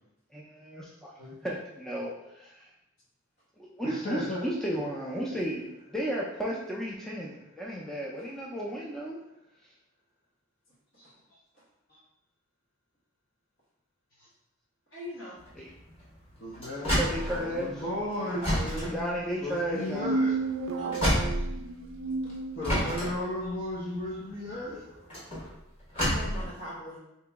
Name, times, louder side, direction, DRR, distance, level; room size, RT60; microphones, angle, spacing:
voice 1, 0.3-1.1 1.4-2.7 3.6-9.2 15.6-15.7 17.0-17.8 18.9-20.2, equal, ahead, -4 dB, 0.4 m, -34 dB
voice 2, 3.8-4.4 11.9-12.0 16.4-17.0 17.4-19.0 19.4-20.9 22.6-25.5, left 1 dB, 50° left, -8 dB, 0.7 m, -35 dB
voice 3, 14.9-15.4 20.7-21.0 22.2-22.4 26.0-27.0, left 1 dB, 70° left, -6 dB, 1.4 m, -41 dB
sound 1, 15.4-22.1 22.6-26.4, equal, 30° left, 1.3 m, -31 dB
sound 2, 19.7-23.2, right 3 dB, 85° right, 0.4 m, -32 dB
2.9 x 2.9 x 3.5 m, 0.86 s
head